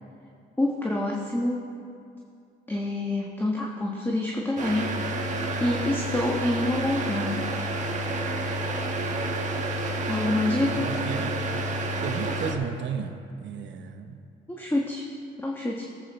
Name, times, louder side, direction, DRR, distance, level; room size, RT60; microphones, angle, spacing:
voice 1, 0.6-1.6 2.7-7.4 10.1-10.9 14.5-15.1 15.4-15.9, left 2 dB, 10° left, -2 dB, 1.3 m, -27 dB
sound 1, 4.6-12.5, right 1 dB, 35° right, 1.4 m, -29 dB
voice 2, 10.6-11.4 12.0-14.2, right 6 dB, 65° right, 6 dB, 0.9 m, -33 dB
18.5 x 8.0 x 4.3 m, 2.5 s
cardioid pair, 90°, 20 cm